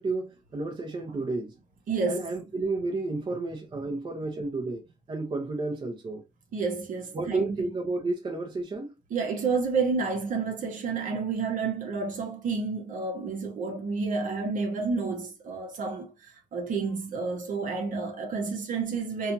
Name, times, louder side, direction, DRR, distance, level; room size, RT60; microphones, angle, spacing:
voice 1, 0.0-1.5 2.1-6.2 7.1-8.9, right 3 dB, 30° right, 0.7 m, -31 dB
voice 2, 1.9-2.3 6.5-7.7 9.1-19.3, right 4 dB, 50° right, 1.0 m, -30 dB
2.7 x 2.3 x 2.5 m
cardioid pair, 110°, 17 cm